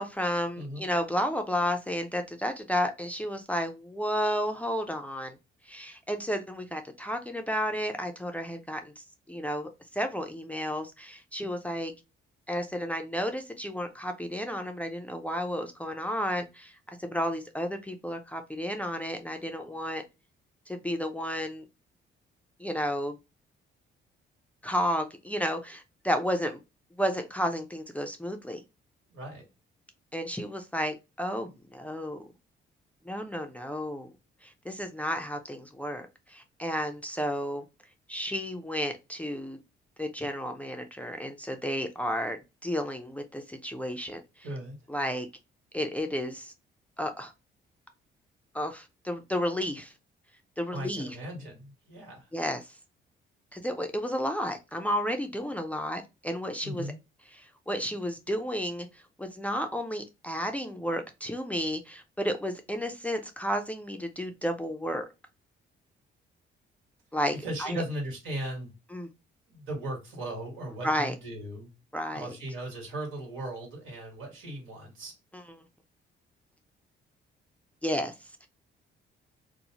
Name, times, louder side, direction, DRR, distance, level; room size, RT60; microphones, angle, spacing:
voice 1, 0.0-5.4 5.7-11.9 12.5-20.0 20.7-21.6 22.6-23.2 24.6-26.6 27.0-28.6 30.1-32.3 33.1-34.1 34.4-37.7 38.1-39.6 40.0-44.5 44.9-45.3 45.7-46.5 47.0-47.3 48.5-49.9 50.6-51.2 52.3-52.8 53.5-56.8 57.3-65.1 67.1-67.8 68.9-69.1 70.8-71.1 71.9-72.4 75.3-75.4 77.8-78.1 78.4-78.5, equal, 5° left, 0.4 m, -32 dB
voice 2, 0.5-0.9 29.1-29.4 44.4-44.8 50.7-52.3 56.6-57.0 67.4-68.7 69.5-71.7 72.1-75.1, right 1 dB, 80° right, 1.4 m, -37 dB
2.7 x 2.0 x 2.8 m
cardioid pair, 90°, 20 cm